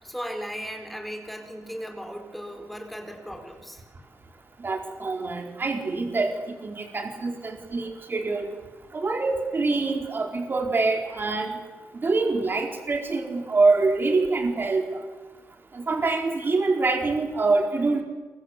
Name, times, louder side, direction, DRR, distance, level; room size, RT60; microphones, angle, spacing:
voice 1, 0.0-3.8, equal, ahead, 4 dB, 4.5 m, -36 dB
voice 2, 4.6-8.5 8.9-11.6 12.0-15.0 15.7-18.0, right 3 dB, 35° right, 3 dB, 4.6 m, -25 dB
27.5 x 23.5 x 8.2 m, 1.2 s
wide cardioid pair, 125°, 6 cm